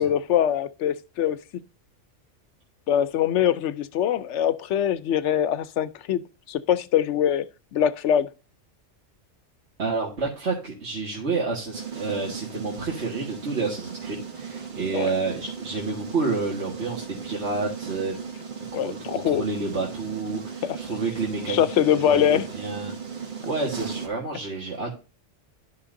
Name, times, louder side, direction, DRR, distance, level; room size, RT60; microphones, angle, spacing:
voice 1, 0.0-1.6 2.9-6.2 6.5-7.5 7.7-8.3 14.9-15.1 18.7-19.4 20.6-20.8 21.5-22.4, left 10 dB, 80° left, 1.0 m, -23 dB
voice 2, 9.8-18.1 18.7-21.7 21.9-24.9, right 3 dB, 65° right, 2.1 m, -29 dB
sound 1, 11.7-24.1, right 6 dB, 45° right, 1.3 m, -37 dB
13.0 x 5.7 x 2.6 m
omnidirectional pair, 1.2 m